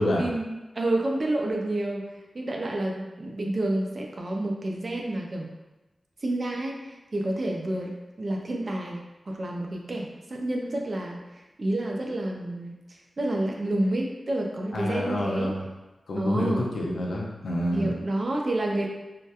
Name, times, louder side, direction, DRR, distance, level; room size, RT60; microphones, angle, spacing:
voice 1, 0.0-5.5 6.2-15.5 16.1-16.7 17.7-18.9, right 1 dB, 40° right, 0 dB, 0.4 m, -29 dB
voice 2, 14.7-15.7 16.1-18.0, left 1 dB, 80° left, -1 dB, 0.4 m, -28 dB
2.7 x 2.1 x 2.2 m, 1.1 s
wide cardioid pair, 135°, 0 cm